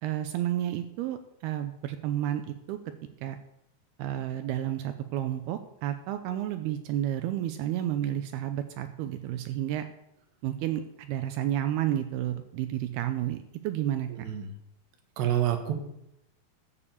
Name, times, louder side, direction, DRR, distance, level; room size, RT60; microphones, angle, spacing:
voice 1, 0.0-2.8 3.2-3.4 4.0-9.9 10.4-14.1, right 12 dB, 85° right, 9 dB, 2.2 m, -31 dB
voice 2, 15.2-15.7, right 11 dB, 70° right, 5 dB, 3.5 m, -27 dB
14.0 x 7.0 x 7.0 m, 0.83 s
omnidirectional pair, 5.3 m